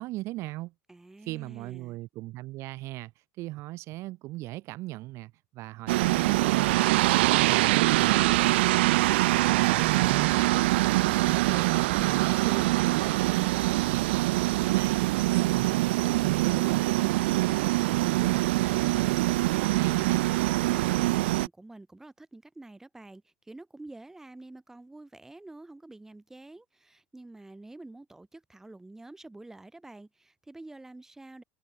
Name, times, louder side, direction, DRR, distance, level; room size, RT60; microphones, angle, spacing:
voice 1, 0.0-0.7 1.2-3.1 3.4-8.6 9.4-10.6 10.9-14.3 14.7-17.1 17.8-20.2, right 18 dB, 55° right, 2.1 m, -37 dB
voice 2, 0.9-2.0 20.7-31.4, right 2 dB, 5° right, 3.6 m, -48 dB
sound 1, 5.9-21.5, right 19 dB, 85° right, 0.5 m, -24 dB
supercardioid pair, 135°, 6 cm